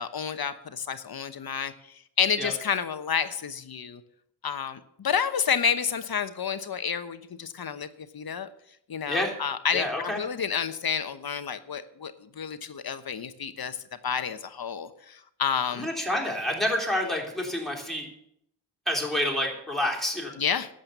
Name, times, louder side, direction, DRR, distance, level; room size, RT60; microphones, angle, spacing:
voice 1, 0.0-1.7 2.2-4.0 4.4-7.9 8.1-8.5 8.9-13.8 14.0-15.9 20.4-20.7, left 7 dB, 55° left, 10 dB, 1.0 m, -29 dB
voice 2, 9.7-10.2 15.7-18.1 18.9-20.3, left 1 dB, ahead, -2 dB, 3.5 m, -28 dB
12.0 x 7.9 x 6.7 m, 0.72 s
wide cardioid pair, 90°, 44 cm